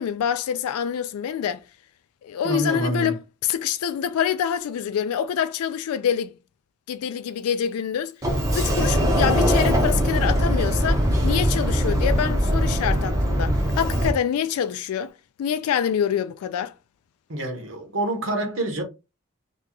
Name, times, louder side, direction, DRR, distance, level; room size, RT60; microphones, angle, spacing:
voice 1, 0.0-1.6 2.2-6.3 6.9-8.1 8.5-15.1 15.4-16.7, left 8 dB, 90° left, 0.3 m, -26 dB
voice 2, 2.4-3.1 17.3-18.8, right 1 dB, 60° right, 1.0 m, -27 dB
Sliding door, 8.2-14.1, equal, 15° right, 0.7 m, -21 dB
2.9 x 2.3 x 3.7 m
head